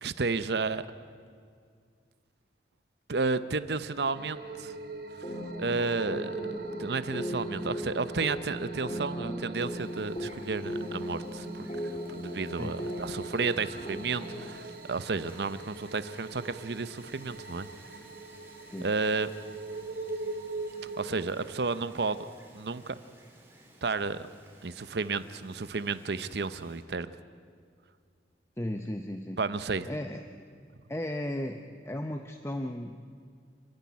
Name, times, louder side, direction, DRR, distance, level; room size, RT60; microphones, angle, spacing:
voice 1, 0.0-0.9 3.1-4.7 5.6-6.4 6.8-17.7 18.8-19.3 21.0-22.3 22.5-23.0 23.8-24.3 24.6-27.1 29.4-29.9, right 4 dB, 75° right, 13 dB, 0.7 m, -32 dB
sound 1, 4.1-21.3, right 3 dB, 55° right, 1.2 m, -43 dB
sound 2, 5.2-14.5, equal, 35° left, 3.3 m, -37 dB
Wind, 9.6-26.8, right 1 dB, 15° right, 2.8 m, -57 dB
voice 2, 28.6-29.4 29.9-30.2 30.9-33.0, left 1 dB, 15° left, 5 dB, 0.7 m, -35 dB
29.0 x 10.5 x 9.5 m, 2.1 s
head